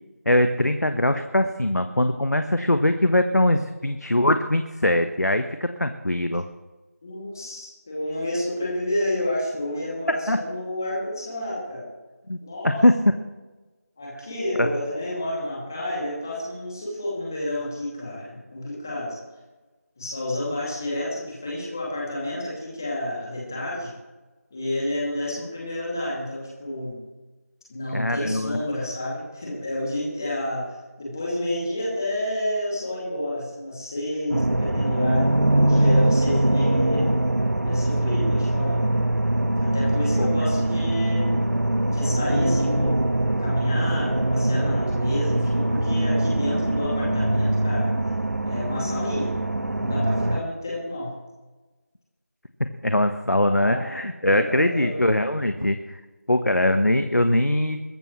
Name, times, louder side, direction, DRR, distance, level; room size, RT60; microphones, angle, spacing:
voice 1, 0.2-6.4 10.3-10.4 12.3-12.4 12.8-12.9 14.6-14.7 27.9-28.7 40.2-40.3 52.8-56.0 56.3-57.8, left 1 dB, 85° left, 8 dB, 1.2 m, -22 dB
voice 2, 7.0-11.9 12.4-12.8 14.0-19.2 20.0-23.9 24.5-27.0 27.7-35.4 35.7-37.0 37.6-38.8 39.6-41.5 41.8-43.0 43.4-47.9 48.4-49.3 49.7-51.1 53.3-53.9 54.2-55.0, left 1 dB, 10° left, -5 dB, 2.5 m, -30 dB
sound 1, 34.3-50.4, right 1 dB, 70° right, 1.3 m, -22 dB
22.0 x 12.5 x 3.2 m, 1.2 s
figure-of-eight pair, 175°, 9 cm